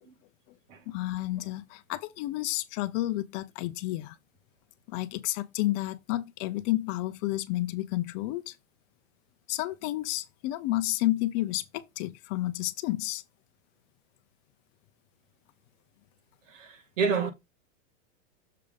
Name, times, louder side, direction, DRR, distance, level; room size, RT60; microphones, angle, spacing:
voice 1, 0.9-4.2 4.9-8.6 9.5-13.2, left 17 dB, 35° left, 0.5 m, -31 dB
voice 2, 16.5-17.3, right 5 dB, 70° right, 2.1 m, -29 dB
6.7 x 3.5 x 5.1 m
hypercardioid pair, 135°, 39 cm